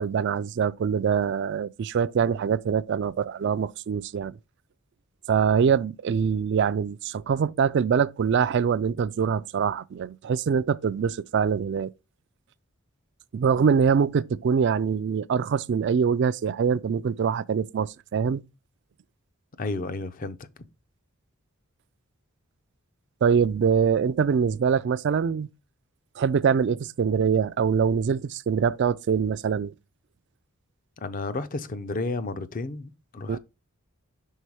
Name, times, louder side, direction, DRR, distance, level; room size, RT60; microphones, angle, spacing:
voice 1, 0.0-4.4 5.3-11.9 13.3-18.4 23.2-25.5 26.2-29.7 33.3-33.4, right 6 dB, 50° right, 0.3 m, -24 dB
voice 2, 19.6-20.5 31.0-33.4, left 3 dB, 40° left, 0.5 m, -32 dB
5.5 x 4.2 x 4.6 m
head